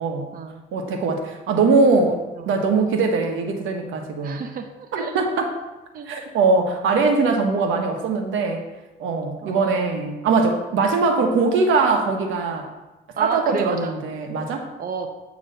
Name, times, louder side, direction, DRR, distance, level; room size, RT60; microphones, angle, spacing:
voice 1, 0.7-4.4 4.9-5.5 6.1-8.7 9.0-12.7 13.2-14.7, right 4 dB, 85° right, 4 dB, 1.1 m, -21 dB
voice 2, 4.2-5.1 5.9-6.1 9.4-9.8 13.2-14.0 14.8-15.1, right 5 dB, 45° right, 5 dB, 0.7 m, -30 dB
8.9 x 3.1 x 6.5 m, 1.1 s
cardioid pair, 90°, 20 cm